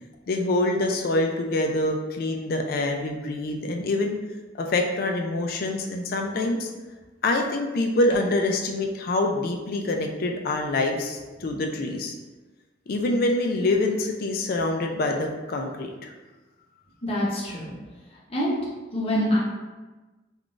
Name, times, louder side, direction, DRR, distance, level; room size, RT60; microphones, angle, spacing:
voice 1, 0.3-4.1 4.6-6.7 7.2-12.1 12.9-16.1, left 2 dB, 50° left, 3 dB, 0.4 m, -25 dB
voice 2, 17.0-17.7 18.3-18.6 18.9-19.4, equal, 30° left, -6 dB, 0.8 m, -25 dB
3.7 x 2.4 x 2.4 m, 1.2 s
head